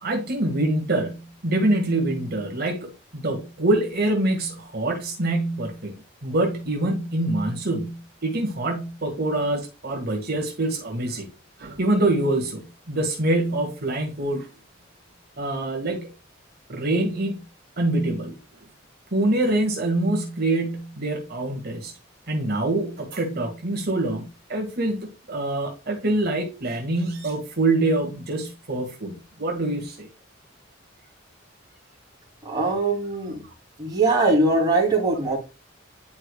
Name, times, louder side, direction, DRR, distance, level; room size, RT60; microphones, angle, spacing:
voice 1, 0.0-5.9 6.2-11.3 11.6-14.5 15.4-16.1 16.7-17.4 17.8-18.4 19.1-21.9 22.3-30.1, right 2 dB, 50° right, 1.8 m, -25 dB
voice 2, 32.4-33.4 33.8-35.4, right 2 dB, 20° right, 2.7 m, -21 dB
10.5 x 4.8 x 2.3 m
head